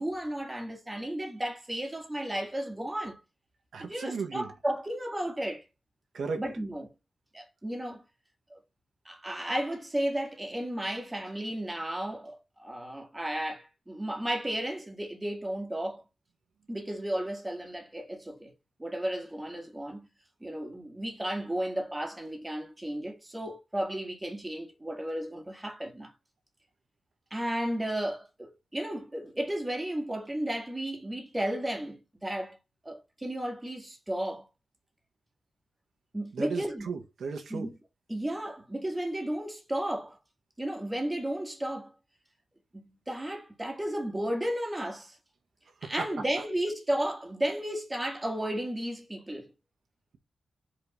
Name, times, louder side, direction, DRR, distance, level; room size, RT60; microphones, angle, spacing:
voice 1, 0.0-3.2 3.8-5.6 6.4-6.9 7.3-8.0 8.5-8.6 9.1-16.0 16.7-18.5 18.8-20.1 20.4-26.1 27.3-32.6 32.8-34.5 36.1-36.9 37.5-37.8 38.1-40.2 40.6-41.9 42.8-45.2 45.8-49.5, right 1 dB, 10° right, 2.0 m, -33 dB
voice 2, 3.7-4.5 6.1-6.4 36.4-37.7, right 5 dB, 80° right, 1.6 m, -35 dB
5.3 x 4.5 x 5.4 m
wide cardioid pair, 150°, 0 cm